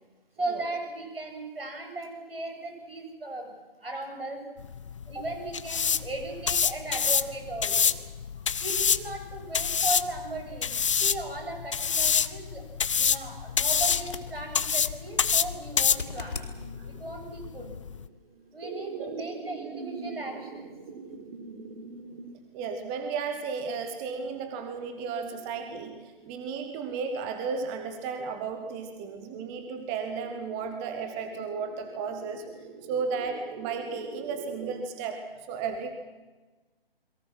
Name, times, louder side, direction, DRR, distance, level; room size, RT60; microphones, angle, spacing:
voice 1, 0.4-4.5 5.1-8.0 8.6-12.7 12.9-16.4 16.8-17.7 18.5-20.7, right 2 dB, 70° right, 3 dB, 7.9 m, -37 dB
sound 1, 4.6-18.1, left 7 dB, 30° left, 0.6 m, -27 dB
sound 2, 13.8-14.3 15.7-16.5 19.5-19.6, left 4 dB, 60° left, 3.7 m, -39 dB
sound 3, 14.9-34.8, right 5 dB, 35° right, 4.8 m, -45 dB
voice 2, 18.9-19.2 22.5-35.9, right 5 dB, 10° right, 7 dB, 0.9 m, -34 dB
29.0 x 22.0 x 6.1 m, 1.2 s
figure-of-eight pair, 145°, 30 cm